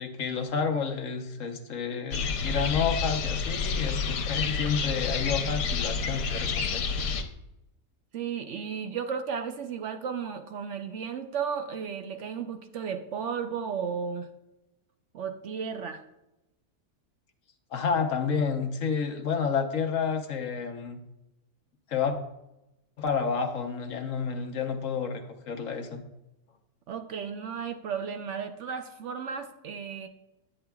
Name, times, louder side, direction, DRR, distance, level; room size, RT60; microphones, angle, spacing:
voice 1, 0.0-6.9 17.7-21.0 21.9-22.2 23.0-26.0, left 6 dB, 55° left, 5 dB, 1.1 m, -30 dB
sound 1, 2.1-7.2, left 5 dB, 90° left, 1.4 m, -29 dB
voice 2, 8.1-14.3 15.1-16.0 26.9-30.1, right 6 dB, 65° right, 7 dB, 0.7 m, -34 dB
9.9 x 8.7 x 2.3 m, 0.92 s
omnidirectional pair, 1.8 m